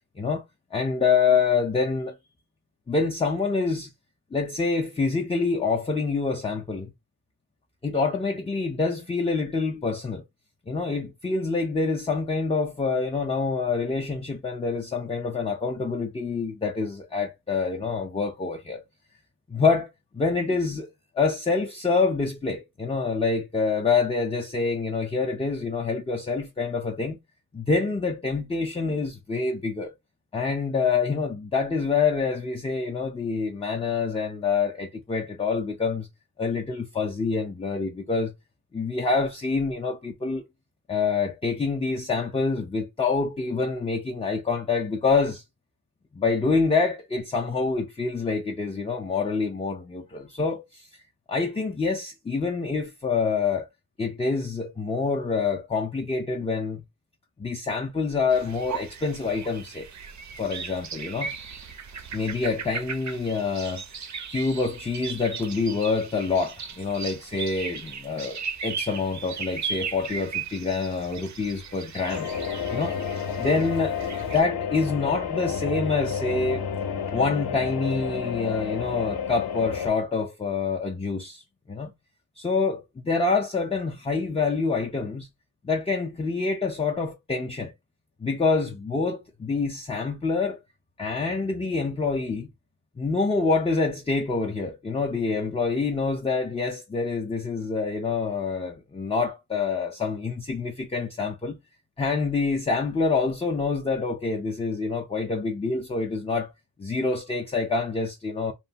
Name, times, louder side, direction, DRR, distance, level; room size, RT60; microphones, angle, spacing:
voice 1, 0.7-2.1 2.9-3.9 4.3-6.9 7.8-10.2 10.7-18.8 19.5-27.2 27.5-29.9 30.3-36.1 36.4-38.3 38.7-40.4 40.9-45.4 46.1-50.9 51.3-53.7 54.0-56.8 57.4-59.9 60.4-61.4 62.1-63.8 64.3-72.3 72.7-73.0 73.4-76.7 77.1-81.4 81.7-81.9 82.4-85.3 85.6-87.7 88.2-90.6 91.0-92.5 93.0-101.6 102.0-106.5 106.8-108.5, left 4 dB, 15° left, 0.3 m, -26 dB
sound 1, 58.3-74.4, right 6 dB, 45° right, 0.5 m, -37 dB
sound 2, 72.1-79.9, left 7 dB, 60° left, 0.6 m, -30 dB
3.0 x 2.1 x 2.6 m
wide cardioid pair, 110°, 42 cm